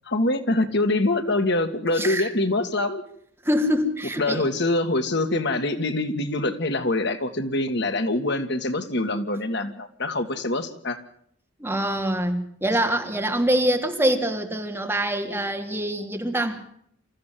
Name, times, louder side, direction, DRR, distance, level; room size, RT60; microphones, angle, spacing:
voice 1, 0.1-3.0 4.2-11.0, left 2 dB, 60° left, 8 dB, 2.0 m, -24 dB
voice 2, 2.0-2.3 3.4-4.5 11.6-16.6, right 1 dB, 10° right, 3 dB, 3.1 m, -24 dB
27.0 x 15.0 x 7.6 m, 0.68 s
head